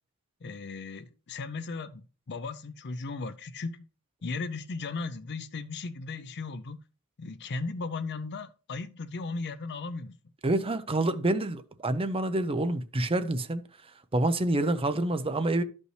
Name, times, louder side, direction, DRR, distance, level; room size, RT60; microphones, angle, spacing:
voice 1, 0.4-3.9 4.2-6.8 7.2-10.2, left 3 dB, 50° left, 0.5 m, -36 dB
voice 2, 10.4-13.6 14.1-15.6, right 2 dB, 25° right, 0.7 m, -27 dB
12.5 x 5.3 x 3.2 m
head